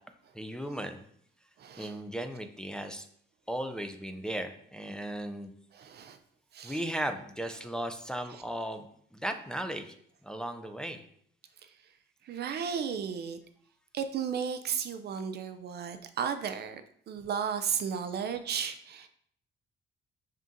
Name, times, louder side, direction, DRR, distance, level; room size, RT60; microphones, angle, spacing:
voice 1, 0.3-1.0 1.8-3.1 3.5-5.5 6.6-9.9 10.2-11.0, right 1 dB, 5° left, 5 dB, 0.4 m, -36 dB
voice 2, 1.6-2.0 5.7-6.2 6.5-6.8 11.6-11.7 12.2-13.4 13.9-16.8 17.1-19.1, right 7 dB, 55° right, 9 dB, 0.4 m, -34 dB
5.5 x 3.5 x 2.6 m, 0.64 s
cardioid pair, 90°, 20 cm